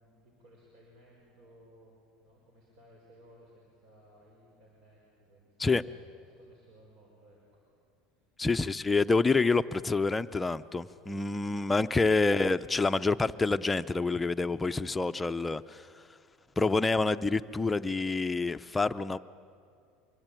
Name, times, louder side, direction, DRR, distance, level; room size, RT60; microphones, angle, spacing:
voice 1, 0.0-6.1 6.4-7.7 10.9-11.7, equal, 60° right, -2 dB, 6.2 m, -60 dB
voice 2, 8.4-15.9 16.6-19.2, left 3 dB, 15° left, 10 dB, 0.6 m, -27 dB
25.5 x 22.5 x 9.1 m, 2.4 s
supercardioid pair, 120°, 0 cm